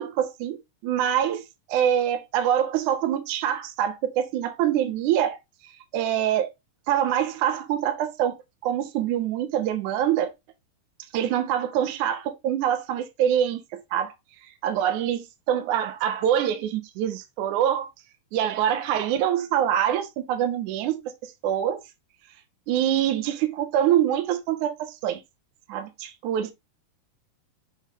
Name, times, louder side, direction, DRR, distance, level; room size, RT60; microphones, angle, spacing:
voice 1, 0.0-5.4 5.6-6.5 6.9-8.4 8.6-10.3 11.1-14.1 14.4-17.9 18.3-21.8 22.7-25.2 25.7-26.5, right 10 dB, 70° right, 2.2 m, -25 dB
6.5 x 3.9 x 5.2 m
omnidirectional pair, 3.9 m